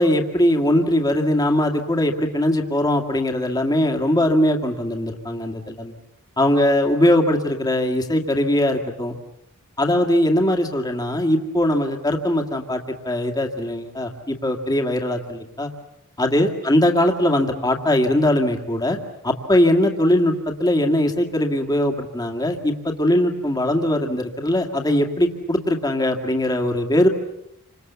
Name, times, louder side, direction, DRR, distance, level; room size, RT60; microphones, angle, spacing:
voice 1, 0.0-5.9 6.4-9.2 9.8-15.7 16.2-19.0 19.2-27.1, left 1 dB, 15° left, 2 dB, 2.1 m, -20 dB
29.5 x 26.0 x 7.0 m, 0.83 s
head